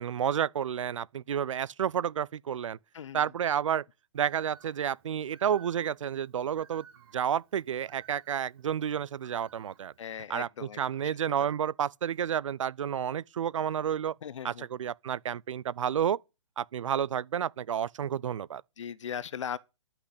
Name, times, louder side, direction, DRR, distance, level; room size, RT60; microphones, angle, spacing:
voice 1, 0.0-2.8 3.1-3.8 4.1-6.8 7.1-9.9 10.3-14.1 14.4-16.2 16.6-18.6, right 9 dB, 75° right, 0.5 m, -30 dB
voice 2, 2.9-3.3 10.0-10.8 11.4-11.5 14.2-14.7 18.8-19.6, left 8 dB, 70° left, 0.8 m, -38 dB
Bird, 4.1-10.1, right 8 dB, 50° right, 3.1 m, -57 dB
11.5 x 6.1 x 8.3 m
hypercardioid pair, 150°, 16 cm